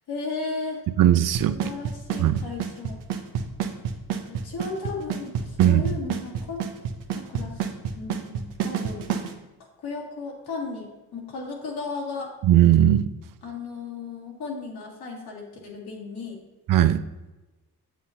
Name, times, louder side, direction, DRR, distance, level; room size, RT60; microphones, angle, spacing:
voice 1, 0.1-0.8 1.5-3.0 4.3-6.7 7.1-7.6 7.9-9.1 9.8-12.3 13.4-16.4, left 4 dB, 70° left, -2 dB, 2.2 m, -35 dB
voice 2, 1.0-1.6 2.2-2.4 5.6-5.8 12.4-13.1 16.7-17.0, right 12 dB, 55° right, 11 dB, 0.5 m, -18 dB
Drum kit / Snare drum / Bass drum, 1.3-9.3, right 8 dB, 90° right, 0.8 m, -28 dB
7.9 x 7.4 x 2.8 m, 1.1 s
cardioid pair, 85°, 39 cm